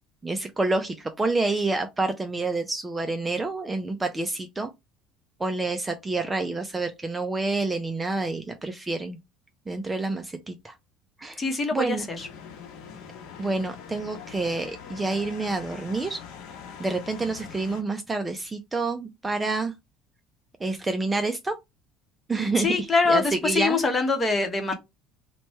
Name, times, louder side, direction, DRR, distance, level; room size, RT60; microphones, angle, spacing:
voice 1, 0.2-4.7 5.4-9.2 9.7-10.7 11.2-11.4 11.7-12.0 13.4-16.2 16.8-19.7 20.6-21.6 22.3-23.8, right 3 dB, 15° right, 0.4 m, -28 dB
voice 2, 11.4-12.3 22.5-24.7, left 3 dB, 25° left, 0.9 m, -24 dB
sound 1, 12.2-17.8, left 7 dB, 75° left, 0.9 m, -43 dB
3.0 x 2.2 x 4.1 m
cardioid pair, 125°, 0 cm